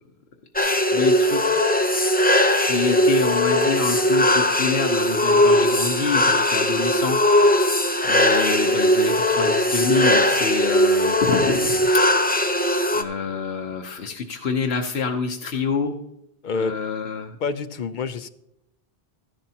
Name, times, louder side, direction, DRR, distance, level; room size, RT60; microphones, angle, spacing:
voice 1, 0.6-1.4 2.6-7.8 8.1-11.7 12.9-16.0 16.5-17.3, left 5 dB, 75° left, 2 dB, 1.1 m, -27 dB
sound 1, 0.6-13.0, left 1 dB, 10° left, 0.5 m, -19 dB
voice 2, 16.4-16.7 17.4-18.3, left 4 dB, 55° left, 11 dB, 0.6 m, -27 dB
13.5 x 11.0 x 2.8 m, 0.82 s
omnidirectional pair, 1.1 m